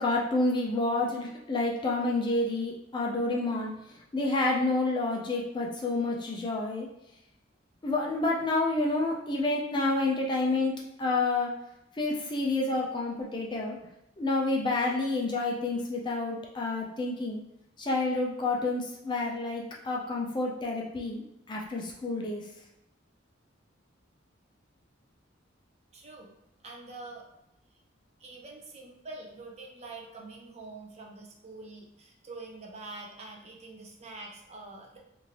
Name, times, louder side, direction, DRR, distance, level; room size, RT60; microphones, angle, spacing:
voice 1, 0.0-3.7 4.1-6.9 7.8-11.5 11.9-13.8 14.2-17.4 17.8-21.2 21.5-22.5, left 2 dB, 25° left, -2 dB, 0.4 m, -29 dB
voice 2, 25.9-26.3 26.6-27.2 28.2-35.0, right 3 dB, 35° right, -1 dB, 0.5 m, -45 dB
3.1 x 2.6 x 2.8 m, 0.89 s
head